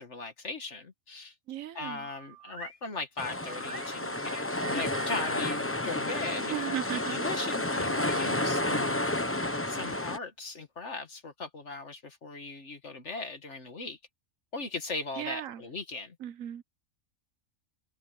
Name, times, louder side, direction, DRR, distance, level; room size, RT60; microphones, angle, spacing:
voice 1, 0.0-1.3 1.8-9.0 9.7-14.0 14.5-16.2, left 3 dB, 60° left, 1.9 m, -39 dB
voice 2, 1.5-2.1 6.5-7.2 15.2-15.6 16.2-16.6, right 11 dB, 85° right, 1.2 m, -36 dB
sound 1, 2.0-2.8 3.4-5.5 6.1-7.9 8.4-10.3, equal, 25° right, 6.1 m, -46 dB
sound 2, 3.2-10.2, left 1 dB, 10° left, 1.0 m, -31 dB
omnidirectional pair, 1.4 m